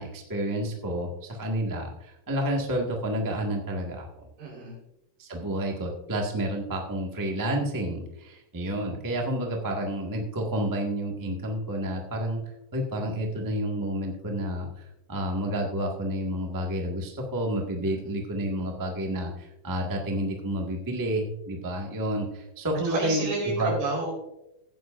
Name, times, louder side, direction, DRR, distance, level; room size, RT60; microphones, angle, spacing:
voice 1, 0.0-4.3 5.2-12.4 12.7-14.7 15.1-23.7, right 1 dB, 30° right, 0 dB, 0.4 m, -30 dB
voice 2, 4.4-4.8 17.8-18.1 22.8-24.1, right 2 dB, 85° right, -2 dB, 6.0 m, -30 dB
16.0 x 10.0 x 2.6 m, 0.88 s
omnidirectional pair, 3.9 m